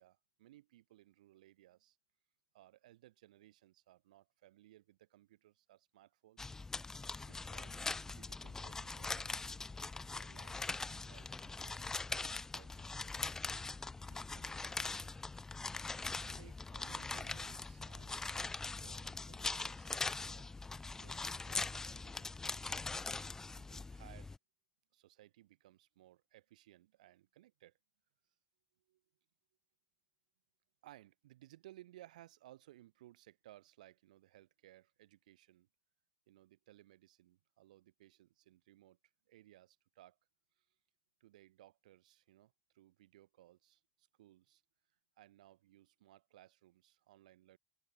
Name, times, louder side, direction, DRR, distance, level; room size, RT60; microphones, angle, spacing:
voice 1, 0.0-2.0 2.5-6.6 7.3-9.6 10.1-13.3 14.0-15.1 16.1-20.5 21.0-23.0 23.5-24.3 24.9-27.8 28.9-29.0 30.8-35.7 36.3-39.0 39.3-40.2 40.6-40.7 41.2-44.6 45.2-47.6, right 15 dB, 85° right, 4.9 m, -62 dB
sound 1, 6.4-24.4, left 3 dB, 10° left, 0.4 m, -42 dB
open air
supercardioid pair, 105°, 4 cm